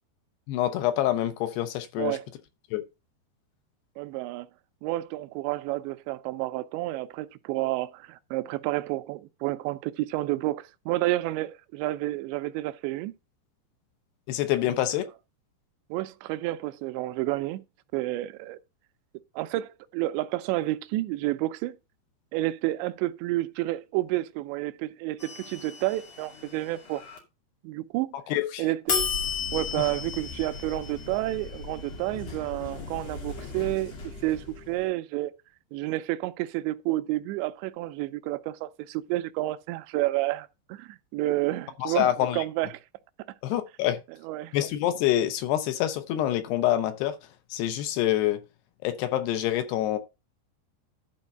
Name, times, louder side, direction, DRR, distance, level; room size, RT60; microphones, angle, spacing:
voice 1, 0.5-2.2 2.7-2.8 14.3-15.1 28.3-28.7 41.8-42.4 43.4-44.0 44.5-47.2 47.5-48.4 48.8-50.0, left 13 dB, 75° left, 2.8 m, -26 dB
voice 2, 4.0-4.5 4.8-13.1 15.9-17.6 17.9-18.6 19.4-21.8 22.3-27.0 27.6-28.2 28.6-29.1 29.5-35.3 35.7-42.7 44.2-44.5, right 17 dB, 85° right, 2.8 m, -30 dB
sound 1, 25.2-27.2 28.9-34.9, left 5 dB, 40° left, 3.3 m, -35 dB
12.0 x 4.5 x 5.3 m
omnidirectional pair, 5.2 m